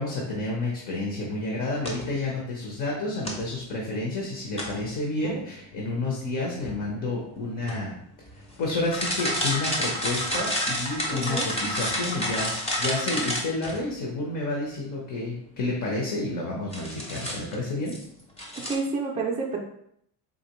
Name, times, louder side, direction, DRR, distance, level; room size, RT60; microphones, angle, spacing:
voice 1, 0.0-7.9 8.3-17.9, left 2 dB, 45° left, -2 dB, 1.0 m, -30 dB
sound 1, 1.7-2.1 3.2-3.5 4.6-4.9 6.6-7.1 7.6-7.8 8.3-13.8 16.7-17.5 17.9-18.0 18.4-18.7, equal, 15° left, 0.7 m, -30 dB
voice 2, 18.7-19.6, right 4 dB, 15° right, -3 dB, 0.4 m, -29 dB
4.1 x 2.9 x 3.0 m, 0.72 s
cardioid pair, 150°, 42 cm